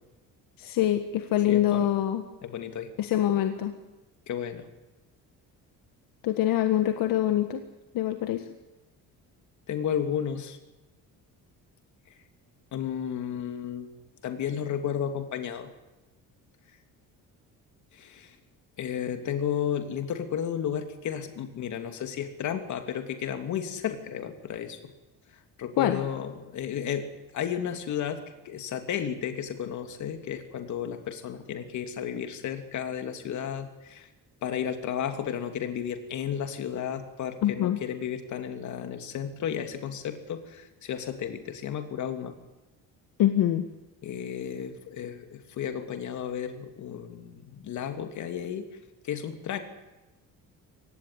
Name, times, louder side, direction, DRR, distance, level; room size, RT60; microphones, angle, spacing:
voice 1, 0.6-2.2 3.0-3.7 6.2-7.6 7.9-8.5 25.8-26.0 37.4-37.8 43.2-43.6, left 12 dB, 70° left, 7 dB, 1.7 m, -24 dB
voice 2, 1.5-1.9 2.4-2.9 4.3-4.7 9.7-10.6 12.7-13.9 14.2-15.7 17.9-18.4 18.8-24.8 25.6-34.1 34.4-42.3 44.0-48.7 49.0-49.6, left 8 dB, 55° left, 7 dB, 2.9 m, -33 dB
24.5 x 19.0 x 9.4 m, 1.1 s
cardioid pair, 175°, 35 cm